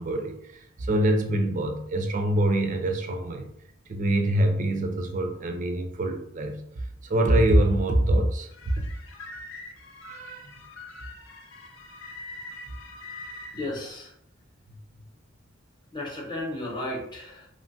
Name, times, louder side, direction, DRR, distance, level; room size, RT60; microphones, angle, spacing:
voice 1, 0.0-3.5 3.9-8.7 10.0-10.5, right 1 dB, 40° right, 5 dB, 0.4 m, -25 dB
sound 1, 8.5-13.7, left 2 dB, 85° left, 0.5 m, -43 dB
voice 2, 13.5-14.1 15.9-17.5, left 1 dB, 20° left, -3 dB, 0.7 m, -34 dB
3.0 x 2.2 x 2.6 m, 0.72 s
head